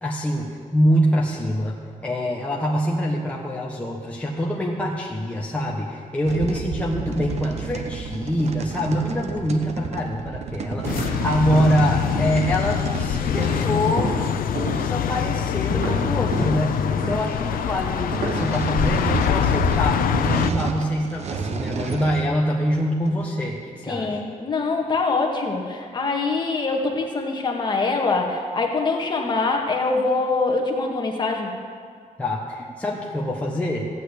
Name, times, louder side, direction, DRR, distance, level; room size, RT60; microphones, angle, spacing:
voice 1, 0.0-1.8 2.0-14.2 14.7-24.2 32.2-33.9, equal, 10° left, -3 dB, 1.3 m, -25 dB
sound 1, 6.3-14.5 18.1-22.3 22.7-23.3, right 6 dB, 50° right, 0.9 m, -31 dB
sound 2, 10.8-20.5, left 9 dB, 85° left, 0.6 m, -24 dB
sound 3, 10.8-18.8, right 2 dB, 80° right, 3.9 m, -31 dB
voice 2, 23.9-31.5, left 3 dB, 30° left, 1 dB, 1.8 m, -24 dB
15.0 x 9.2 x 8.3 m, 2.1 s
wide cardioid pair, 170°, 14 cm